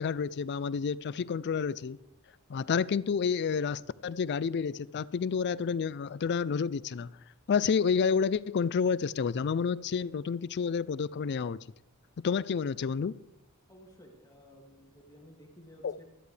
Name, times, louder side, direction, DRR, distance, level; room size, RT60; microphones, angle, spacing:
voice 1, 0.0-2.0 2.5-7.1 7.5-11.6 12.2-13.1 15.8-16.0, left 6 dB, 50° left, 0.4 m, -29 dB
voice 2, 13.7-16.0, equal, 15° left, 2.3 m, -54 dB
19.5 x 13.0 x 3.3 m
head